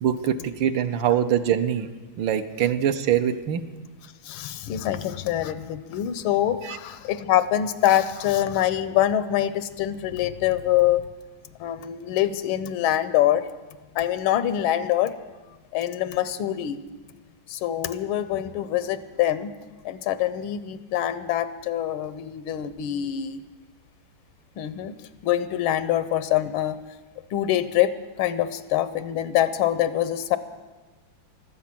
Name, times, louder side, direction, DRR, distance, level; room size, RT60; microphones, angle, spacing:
voice 1, 0.0-1.9 2.2-3.6 6.6-6.8, right 9 dB, 75° right, 10 dB, 1.5 m, -23 dB
voice 2, 4.0-11.0 11.6-13.4 13.9-15.1 15.7-16.8 17.5-19.5 19.8-23.4 24.6-24.9 25.2-26.8 27.3-30.4, left 12 dB, 90° left, 13 dB, 1.5 m, -24 dB
16.0 x 12.5 x 6.0 m, 1.2 s
omnidirectional pair, 2.2 m